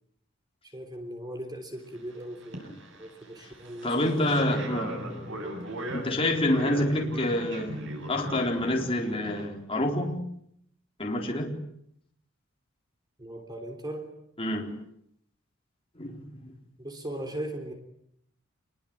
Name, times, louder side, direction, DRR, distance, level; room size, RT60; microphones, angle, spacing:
voice 1, 0.6-4.4 13.2-14.1 16.8-17.7, right 1 dB, 20° right, 3.5 m, -39 dB
sound 1, 1.9-2.1 2.4-9.5, right 1 dB, 65° right, 7.8 m, -39 dB
voice 2, 3.8-5.2 5.9-10.2 11.0-11.6 14.4-14.8 16.0-16.5, left 1 dB, 30° left, 4.1 m, -28 dB
28.0 x 22.5 x 8.9 m
head